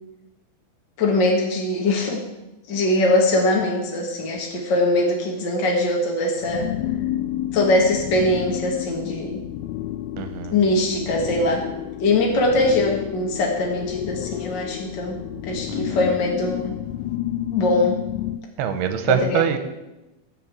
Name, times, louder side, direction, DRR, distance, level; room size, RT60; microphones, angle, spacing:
voice 1, 1.0-2.2 2.7-6.7 7.5-9.4 10.5-11.6 12.0-16.7 17.5-18.0 19.1-19.4, left 2 dB, 50° left, 0 dB, 1.3 m, -22 dB
sound 1, 6.4-18.4, left 12 dB, 85° left, 2.5 m, -30 dB
voice 2, 10.2-10.5 15.7-16.0 18.6-19.6, right 7 dB, 85° right, 9 dB, 3.0 m, -23 dB
15.0 x 5.6 x 8.3 m, 1.0 s
omnidirectional pair, 4.5 m